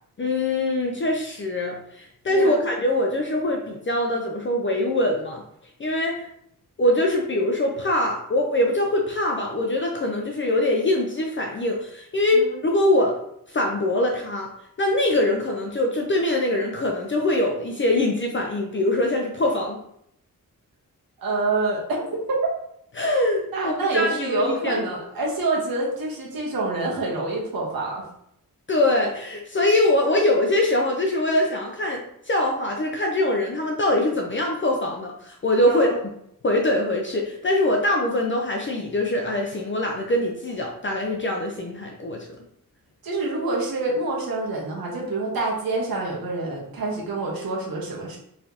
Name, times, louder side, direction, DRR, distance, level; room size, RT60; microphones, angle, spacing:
voice 1, 0.2-5.4 5.8-6.2 6.8-13.2 13.5-14.5 14.8-19.8 23.0-24.8 28.7-32.0 32.3-35.9 36.4-42.2, left 1 dB, 35° left, 0 dB, 0.5 m, -23 dB
voice 2, 2.3-2.6 12.3-12.6 21.2-22.4 23.5-28.0 35.7-35.8 43.0-48.2, right 2 dB, 85° right, -3 dB, 1.2 m, -27 dB
4.3 x 3.3 x 2.8 m, 0.73 s
wide cardioid pair, 155°, 35 cm